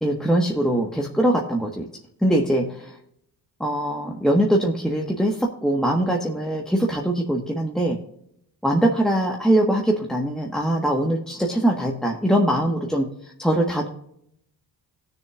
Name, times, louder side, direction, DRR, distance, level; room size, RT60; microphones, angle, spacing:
voice 1, 0.0-1.9 2.2-2.9 3.6-8.0 8.6-13.1 13.4-13.9, right 1 dB, ahead, -1 dB, 1.5 m, -22 dB
18.0 x 6.7 x 2.5 m, 0.72 s
cardioid pair, 75°, 40 cm